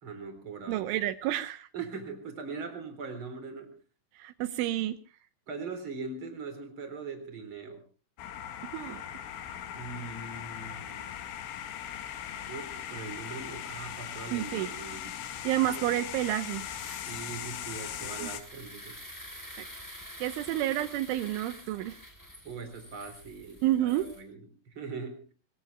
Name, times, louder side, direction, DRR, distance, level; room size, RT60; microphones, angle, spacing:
voice 1, 0.0-0.9 1.7-3.7 5.5-7.8 9.7-11.2 12.5-15.2 17.1-19.0 22.4-25.3, right 4 dB, 25° right, 8 dB, 4.3 m, -41 dB
voice 2, 0.7-1.7 4.2-5.0 8.7-9.0 14.3-14.7 15.4-16.6 18.2-18.3 20.2-22.0 23.6-24.1, right 14 dB, 80° right, 11 dB, 3.4 m, -29 dB
sound 1, 8.2-18.4, left 10 dB, 80° left, 4.3 m, -39 dB
sound 2, 15.6-24.2, equal, 5° left, 3.5 m, -48 dB
25.0 x 22.0 x 2.3 m, 0.39 s
omnidirectional pair, 5.5 m